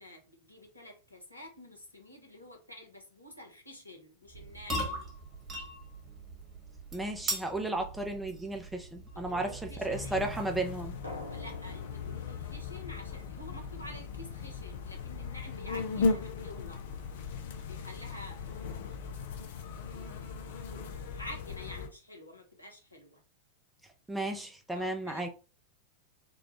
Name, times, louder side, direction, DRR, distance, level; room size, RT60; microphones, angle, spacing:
voice 1, 0.0-5.1 9.1-10.4 11.3-16.8 17.7-18.7 19.9-23.2 24.7-25.3, left 1 dB, 85° left, 1.0 m, -49 dB
sound 1, 4.3-10.7, right 1 dB, 25° right, 1.6 m, -40 dB
voice 2, 6.9-10.9 24.1-25.3, right 2 dB, 5° right, 0.7 m, -34 dB
sound 2, 9.9-21.9, left 4 dB, 55° left, 0.5 m, -37 dB
Drum, 11.0-13.7, left 1 dB, 85° right, 0.8 m, -48 dB
3.8 x 2.3 x 3.0 m
figure-of-eight pair, 90°, 0 cm